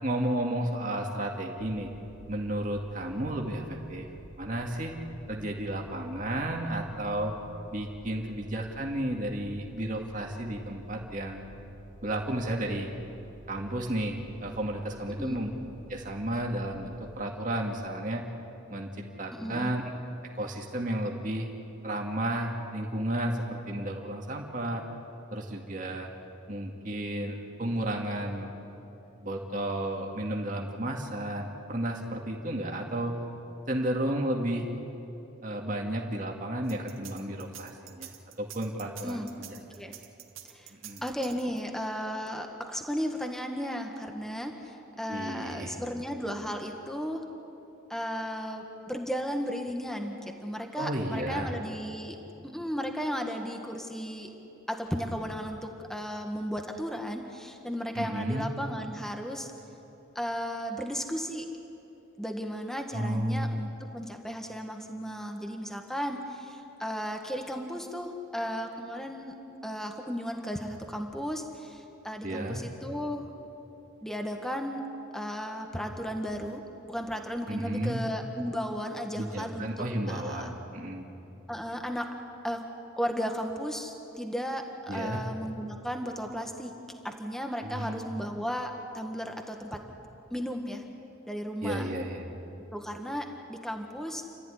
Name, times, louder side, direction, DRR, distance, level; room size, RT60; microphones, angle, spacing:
voice 1, 0.0-1.9 2.3-4.1 4.4-5.0 5.3-7.3 7.7-11.4 12.0-12.9 13.5-15.5 15.9-18.2 18.7-18.9 19.2-19.8 20.4-21.5 21.8-24.8 25.3-26.1 26.5-28.5 29.2-33.1 33.7-34.7 35.4-38.1 38.4-39.2 40.7-41.0 45.1-45.7 50.8-51.5 58.0-58.5 62.9-63.5 72.2-72.6 77.5-78.0 79.2-81.1 84.9-85.2 87.6-88.0 91.6-92.3, right 1 dB, 40° right, 0 dB, 2.3 m, -32 dB
sound 1, 1.6-17.2, right 1 dB, 70° right, 1.3 m, -50 dB
voice 2, 19.3-19.7 39.0-39.9 40.4-40.7 41.0-47.2 47.9-52.2 52.4-54.3 54.7-59.5 60.1-61.4 62.2-69.3 69.6-73.3 74.0-74.8 75.1-76.6 76.9-80.5 81.5-82.1 82.4-82.6 83.0-86.7 87.0-89.8 90.3-90.8 91.3-91.9 92.7-94.2, equal, ahead, 3 dB, 1.5 m, -35 dB
sound 2, 36.7-41.8, right 12 dB, 85° right, 2.0 m, -46 dB
29.5 x 14.0 x 10.0 m, 3.0 s
head